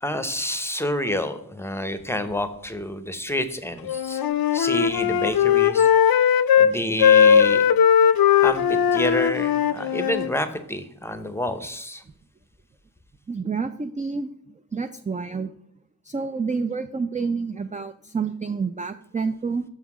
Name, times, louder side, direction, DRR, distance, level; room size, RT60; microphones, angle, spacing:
voice 1, 0.0-4.2 4.5-5.9 6.6-7.6 8.4-12.0, left 1 dB, 5° left, 10 dB, 0.7 m, -28 dB
Wind instrument woodwind instrument, 3.9-6.7 7.0-10.3, left 8 dB, 80° left, 0.5 m, -18 dB
voice 2, 13.3-15.5 16.0-19.6, right 5 dB, 20° right, 9 dB, 0.3 m, -29 dB
6.3 x 5.7 x 6.0 m, 0.70 s
wide cardioid pair, 90°, 36 cm